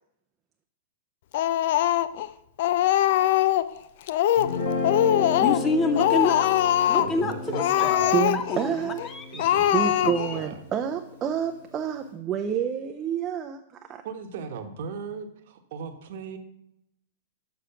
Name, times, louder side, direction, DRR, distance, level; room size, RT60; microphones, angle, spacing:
Speech, 1.3-2.3 2.6-3.7 4.1-4.6 4.8-5.7 5.9-7.1 7.5-8.6 9.0-9.1 9.4-10.4, left 12 dB, 60° left, 0.4 m, -22 dB
Guitar, 4.4-10.7, left 3 dB, 80° left, 2.9 m, -33 dB
voice 1, 5.4-6.5 6.9-10.3, left 3 dB, 20° left, 9 dB, 0.7 m, -29 dB
voice 2, 7.0-8.3 9.3-10.6 14.0-16.4, right 6 dB, 60° right, 6 dB, 1.1 m, -37 dB
voice 3, 8.1-9.0 9.7-14.0, right 9 dB, 25° right, 5 dB, 0.5 m, -28 dB
6.9 x 6.2 x 5.8 m, 0.78 s
hypercardioid pair, 140°, 0 cm